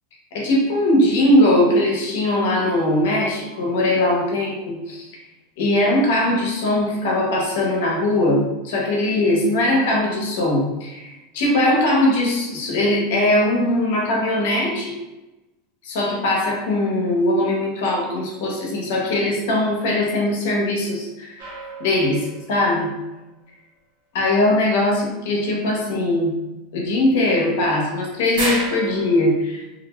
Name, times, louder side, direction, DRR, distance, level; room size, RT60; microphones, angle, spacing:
voice 1, 0.3-5.1 5.6-14.9 15.8-21.5 21.8-22.9 24.1-26.4 26.7-29.6, left 1 dB, 75° left, -2 dB, 0.9 m, -20 dB
sound 1, 21.4-22.7 27.3-27.4 27.7-27.8 28.3-29.3, right 2 dB, 75° right, 1.0 m, -30 dB
2.6 x 2.1 x 3.0 m, 1.0 s
hypercardioid pair, 110°, 0 cm